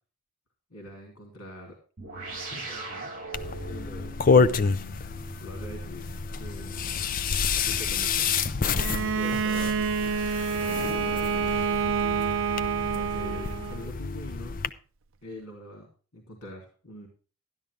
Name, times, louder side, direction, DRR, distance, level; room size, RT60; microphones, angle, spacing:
voice 1, 0.7-1.7 2.5-3.1 3.4-4.2 5.4-6.1 6.4-7.0 7.5-8.3 9.0-9.8 10.5-12.0 12.8-14.6 15.2-17.1, left 1 dB, 70° left, 0 dB, 3.4 m, -44 dB
sound 1, 2.0-10.8, right 2 dB, 40° right, 4.1 m, -43 dB
sound 2, 3.3-14.7, left 5 dB, 40° left, 0.5 m, -28 dB
Bowed string instrument, 8.8-13.9, right 6 dB, 60° right, 0.5 m, -28 dB
12.0 x 11.5 x 3.6 m, 0.37 s
head